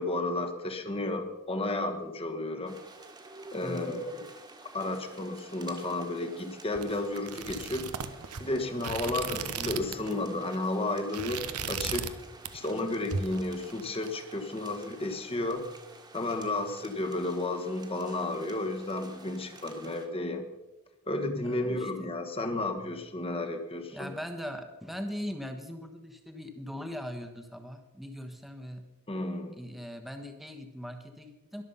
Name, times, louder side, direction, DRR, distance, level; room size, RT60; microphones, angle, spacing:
voice 1, 0.0-2.8 3.5-4.2 4.7-7.9 8.4-12.2 12.5-15.7 16.1-20.5 21.1-24.1 29.1-29.6, left 2 dB, 25° left, 5 dB, 1.3 m, -32 dB
sound 1, 2.7-20.1, right 2 dB, 20° right, 1.7 m, -51 dB
voice 2, 3.6-4.0 9.1-9.4 21.4-22.1 23.9-28.8 29.6-31.6, equal, ahead, 6 dB, 1.2 m, -40 dB
sound 2, 6.7-10.1 10.4-10.6 11.0-12.2 12.4-12.8 13.1-14.1, right 6 dB, 90° right, 0.9 m, -36 dB
22.0 x 7.4 x 5.6 m, 1.1 s
head